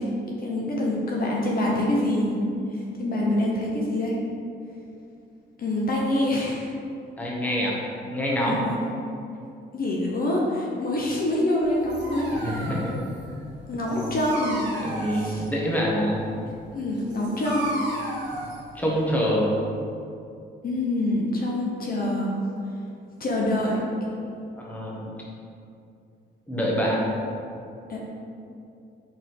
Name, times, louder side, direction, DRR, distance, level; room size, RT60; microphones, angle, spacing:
voice 1, 0.0-2.4 2.7-4.2 5.6-6.7 8.4-8.9 9.7-12.7 13.7-14.7 15.1-15.4 16.7-17.7 20.6-22.4 23.2-23.8 27.9-28.0, left 1 dB, 45° left, -3 dB, 1.0 m, -26 dB
voice 2, 7.2-7.7 8.1-8.6 12.4-13.0 13.3-13.5 13.9-14.1 14.8-16.2 18.7-19.5 24.6-25.1 26.5-27.1, equal, 10° left, -4 dB, 1.3 m, -26 dB
Dog, 11.6-19.5, right 1 dB, 65° right, 1.2 m, -36 dB
4.9 x 4.2 x 4.7 m, 2.5 s
cardioid pair, 90°, 20 cm